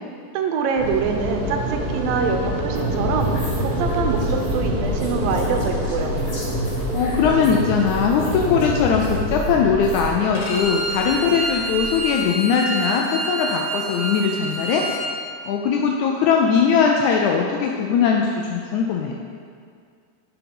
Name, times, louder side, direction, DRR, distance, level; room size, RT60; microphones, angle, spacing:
voice 1, 0.3-6.1, right 5 dB, 90° right, 4 dB, 2.5 m, -25 dB
sound 1, 0.8-12.0, right 2 dB, 55° right, 1.9 m, -29 dB
sound 2, 2.7-10.1, left 1 dB, 45° left, 2.6 m, -27 dB
voice 2, 6.7-14.8 15.4-19.2, left 6 dB, 80° left, 1 dB, 1.7 m, -20 dB
Bowed string instrument, 10.4-15.1, right 1 dB, 65° left, 2.7 m, -28 dB
8.6 x 5.9 x 5.3 m, 2.2 s
omnidirectional pair, 3.9 m